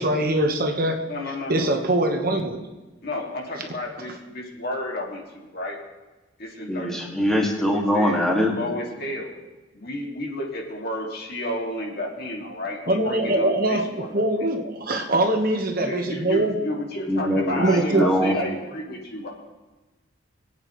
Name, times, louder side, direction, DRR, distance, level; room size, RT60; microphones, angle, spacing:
voice 1, 0.0-1.0 1.5-2.6 12.9-16.5 17.2-17.3 17.6-18.0, right 1 dB, 50° right, 4 dB, 1.2 m, -23 dB
voice 2, 1.1-1.7 3.0-5.8 6.4-7.5 7.9-9.3 9.7-14.1 15.8-19.3, left 1 dB, 55° left, -1 dB, 2.3 m, -31 dB
voice 3, 6.7-8.5 17.1-17.6 18.0-18.4, equal, 5° left, -2 dB, 2.0 m, -22 dB
24.0 x 8.9 x 3.1 m, 1.2 s
head